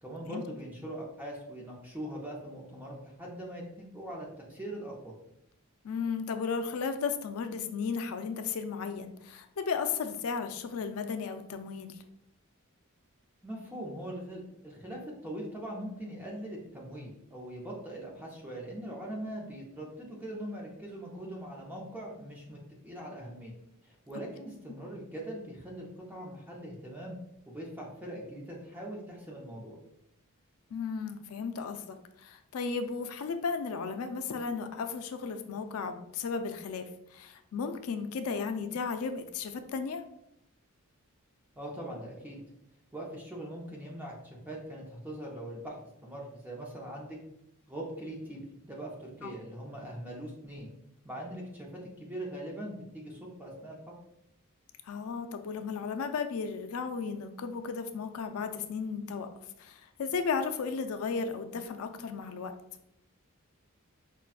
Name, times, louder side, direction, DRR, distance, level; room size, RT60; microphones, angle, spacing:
voice 1, 0.0-5.2 13.4-22.6 22.8-23.5 23.8-27.2 27.5-29.8 41.6-42.4 42.9-44.1 44.5-45.8 46.0-47.2 47.7-50.7 51.0-53.8, right 1 dB, 10° right, -3 dB, 0.6 m, -41 dB
voice 2, 5.8-12.0 30.7-40.0 49.2-49.3 54.9-59.3 59.6-62.5, left 5 dB, 75° left, 8 dB, 0.4 m, -35 dB
5.5 x 2.2 x 2.4 m, 0.79 s
head